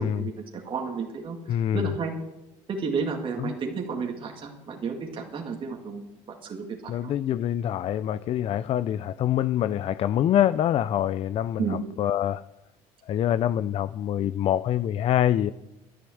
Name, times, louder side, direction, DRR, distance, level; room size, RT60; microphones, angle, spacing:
voice 1, 0.0-2.1 2.7-7.1 11.6-11.8, right 5 dB, 40° right, 1 dB, 2.0 m, -32 dB
voice 2, 1.5-1.9 3.4-3.5 6.9-12.4 13.1-15.5, left 11 dB, 45° left, 15 dB, 0.4 m, -25 dB
11.5 x 10.5 x 7.9 m, 0.94 s
cardioid pair, 110°, 14 cm